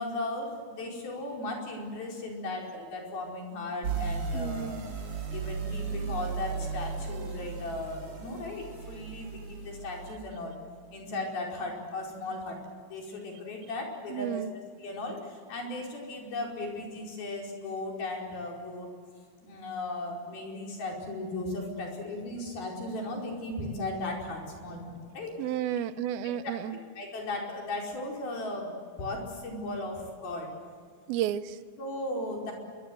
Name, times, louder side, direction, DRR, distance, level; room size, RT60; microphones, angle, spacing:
voice 1, 0.0-4.8 5.3-10.6 10.9-12.6 12.9-14.4 14.8-19.0 19.4-25.5 26.4-30.5 31.8-32.5, left 2 dB, 80° left, -1 dB, 6.7 m, -36 dB
sound 1, 3.8-10.2, right 5 dB, 40° right, 3.2 m, -36 dB
voice 2, 4.3-4.8 14.1-14.5 25.4-26.8 31.1-31.6, right 11 dB, 90° right, 13 dB, 2.7 m, -32 dB
27.5 x 24.0 x 7.9 m, 2.1 s
omnidirectional pair, 4.2 m